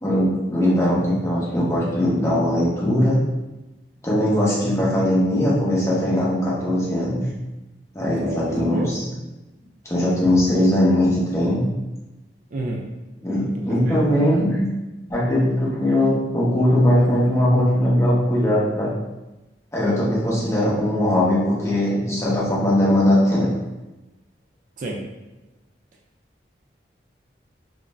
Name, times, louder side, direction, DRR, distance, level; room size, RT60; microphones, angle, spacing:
voice 1, 0.0-3.2 4.0-7.2 7.9-9.1 9.8-11.6 13.2-14.7 15.1-18.9 19.7-23.5, left 1 dB, 15° left, -7 dB, 0.7 m, -20 dB
voice 2, 8.1-8.9 12.5-12.8 13.5-14.0 24.8-25.0, right 1 dB, 45° right, -1 dB, 0.3 m, -30 dB
2.5 x 2.0 x 3.2 m, 1.1 s
head